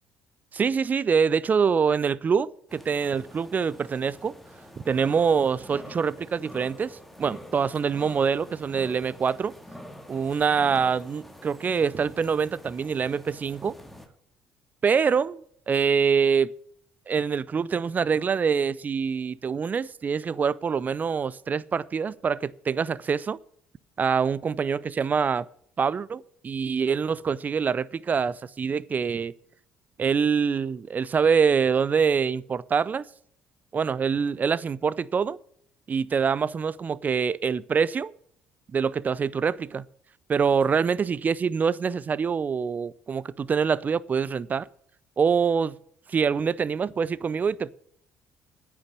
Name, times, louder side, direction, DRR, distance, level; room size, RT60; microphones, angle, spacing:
voice 1, 0.5-4.4 4.8-9.5 10.1-13.8 14.8-16.5 17.1-23.4 24.0-25.5 25.8-29.3 30.0-33.0 33.7-35.4 35.9-38.1 38.7-39.9 40.3-44.7 45.2-45.8 46.1-47.7, right 6 dB, 35° right, 0.5 m, -25 dB
sound 1, 2.7-14.1, equal, 5° left, 2.1 m, -46 dB
9.7 x 6.9 x 8.0 m
hypercardioid pair, 55°, 5 cm